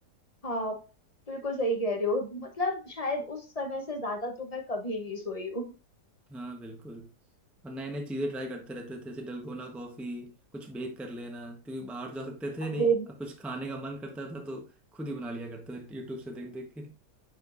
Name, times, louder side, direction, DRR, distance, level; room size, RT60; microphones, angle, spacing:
voice 1, 0.4-0.8 1.3-5.7 12.7-13.1, right 1 dB, 25° left, 0.9 m, -31 dB
voice 2, 6.3-7.1 7.6-12.9 13.2-16.9, right 1 dB, ahead, 0.8 m, -38 dB
9.1 x 4.4 x 2.6 m
omnidirectional pair, 1.8 m